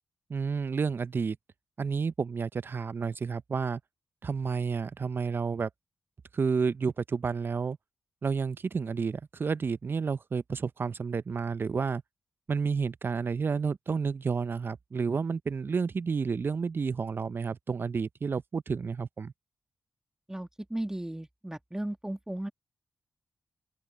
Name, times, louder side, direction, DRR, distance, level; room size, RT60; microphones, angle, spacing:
voice 1, 0.3-1.4 1.8-3.8 4.2-5.7 6.3-7.8 8.2-12.0 12.5-19.3, right 5 dB, 50° right, 0.6 m, -30 dB
voice 2, 20.3-22.5, right 1 dB, 10° right, 1.9 m, -35 dB
open air
supercardioid pair, 45°, 5 cm